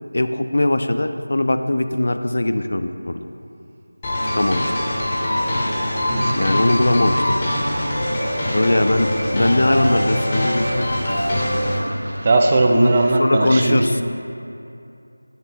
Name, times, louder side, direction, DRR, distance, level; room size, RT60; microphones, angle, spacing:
voice 1, 0.1-3.2 4.3-4.9 6.3-7.4 8.5-10.9 12.7-12.9 13.2-14.0, left 1 dB, 60° left, 8 dB, 0.4 m, -20 dB
sound 1, 4.0-11.8, left 1 dB, 15° left, 0.8 m, -23 dB
sound 2, 4.1-13.2, equal, 70° right, 0.9 m, -36 dB
voice 2, 6.1-6.5 12.2-14.0, right 2 dB, 20° right, 3 dB, 0.4 m, -18 dB
10.0 x 3.4 x 4.2 m, 2.6 s
figure-of-eight pair, 175°, 0 cm